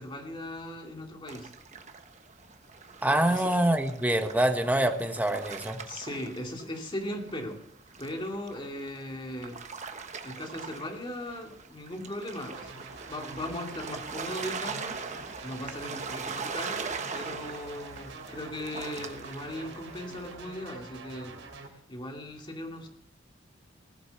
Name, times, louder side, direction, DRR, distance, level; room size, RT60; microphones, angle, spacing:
voice 1, 0.0-1.5 3.3-3.6 5.8-7.6 8.0-9.6 10.2-12.7 13.1-15.0 15.4-16.9 17.1-21.4 21.9-22.9, left 1 dB, 25° left, 2 dB, 2.4 m, -38 dB
sound 1, 1.3-7.0 7.3-20.3, right 5 dB, 40° right, 1.1 m, -41 dB
voice 2, 3.0-5.8, right 1 dB, 10° right, 6 dB, 1.2 m, -25 dB
sound 2, 12.5-21.7, right 3 dB, 85° right, 3.6 m, -46 dB
19.0 x 8.0 x 7.0 m, 0.73 s
head